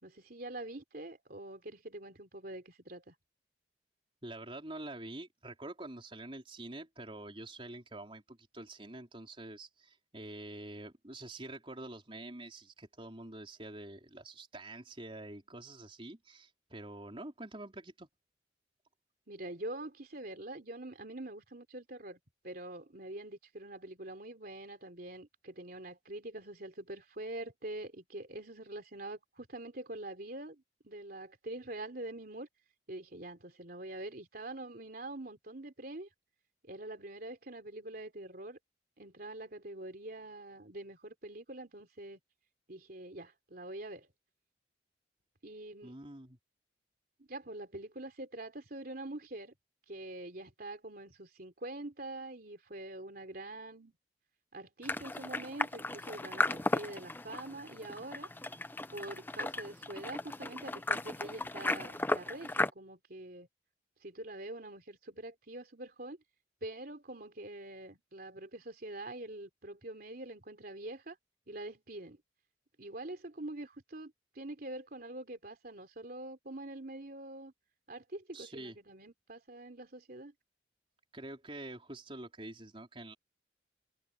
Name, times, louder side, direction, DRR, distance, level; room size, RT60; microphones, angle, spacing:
voice 1, 0.0-3.1 19.3-22.2 22.4-32.5 32.9-36.1 36.6-38.6 39.0-42.2 42.7-44.1 45.4-46.0 47.2-49.5 49.9-53.9 54.5-58.3 58.9-63.5 64.0-66.2 66.6-71.2 71.5-72.2 72.8-77.5 77.9-80.3, right 1 dB, 55° right, 3.4 m, -45 dB
voice 2, 4.2-18.1 45.8-46.4 78.3-78.8 81.1-83.2, right 2 dB, 30° right, 4.2 m, -46 dB
sound 1, 54.8-62.7, left 2 dB, 10° left, 0.6 m, -35 dB
head